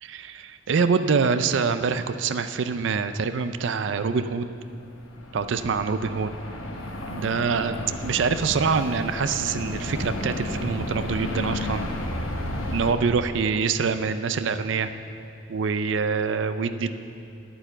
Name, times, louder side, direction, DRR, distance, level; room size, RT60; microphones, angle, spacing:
voice 1, 0.0-4.5 5.3-6.3 7.1-7.8 8.0-11.8 12.7-14.9 15.5-16.9, right 5 dB, 65° right, 10 dB, 0.4 m, -25 dB
sound 1, 4.7-12.9, left 1 dB, 85° left, 1.2 m, -32 dB
9.0 x 8.9 x 7.2 m, 2.5 s
head